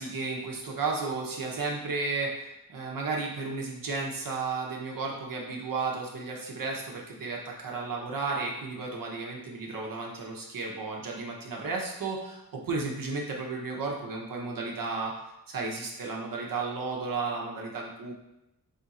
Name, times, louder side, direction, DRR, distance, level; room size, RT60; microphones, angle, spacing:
voice 1, 0.0-15.1 15.5-18.1, right 4 dB, 65° right, -1 dB, 0.9 m, -33 dB
3.6 x 2.5 x 4.1 m, 0.90 s
cardioid pair, 90°, 35 cm